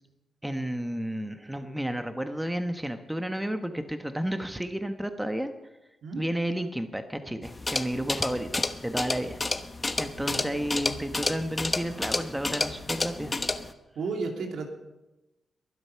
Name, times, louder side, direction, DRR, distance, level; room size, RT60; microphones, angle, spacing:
voice 1, 0.4-5.5 6.2-9.4 10.0-13.3, right 1 dB, 5° right, 7 dB, 1.2 m, -32 dB
sound 1, 7.4-13.7, left 2 dB, 25° left, 1.0 m, -31 dB
voice 2, 10.3-10.6 14.0-14.7, right 4 dB, 75° right, 3 dB, 2.6 m, -33 dB
22.0 x 8.0 x 5.8 m, 1.0 s
cardioid pair, 75°, 0 cm